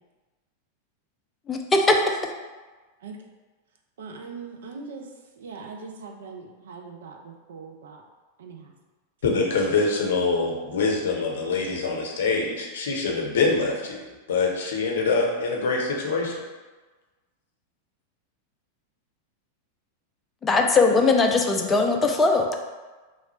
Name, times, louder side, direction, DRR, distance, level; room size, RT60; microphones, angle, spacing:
voice 1, 1.5-2.2 20.4-22.5, left 3 dB, 20° left, 3 dB, 0.4 m, -20 dB
voice 2, 4.0-5.1 5.4-8.0 8.4-8.7, right 4 dB, 60° right, 2 dB, 0.5 m, -41 dB
voice 3, 9.2-16.4, left 4 dB, 60° left, -1 dB, 0.7 m, -25 dB
3.1 x 2.4 x 4.2 m, 1.3 s
figure-of-eight pair, 90°, 0 cm